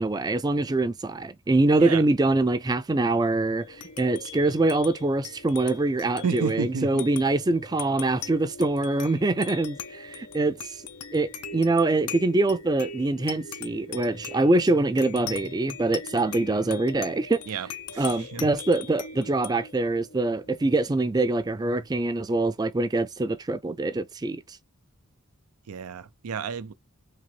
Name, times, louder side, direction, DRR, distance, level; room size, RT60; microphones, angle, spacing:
voice 1, 0.0-10.8 11.1-17.4 18.0-24.6, right 2 dB, 20° right, 0.3 m, -24 dB
sound 1, 3.6-22.4, left 6 dB, 90° left, 0.7 m, -41 dB
voice 2, 6.2-7.1 17.5-18.5 25.7-26.7, right 6 dB, 85° right, 0.5 m, -32 dB
3.7 x 3.0 x 3.1 m
head